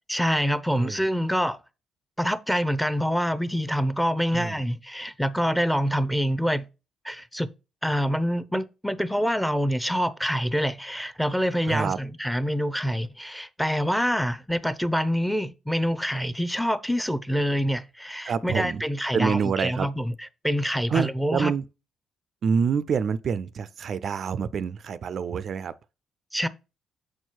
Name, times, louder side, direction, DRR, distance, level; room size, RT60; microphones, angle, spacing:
voice 1, 0.1-1.6 2.2-6.7 7.0-7.5 7.8-20.1 20.4-21.5 26.3-26.5, equal, ahead, 0.6 m, -26 dB
voice 2, 11.7-12.0 18.2-18.8 19.1-19.9 20.9-21.6 22.4-25.7, right 6 dB, 55° right, 0.4 m, -27 dB
6.3 x 4.5 x 4.5 m
cardioid pair, 90°, 0 cm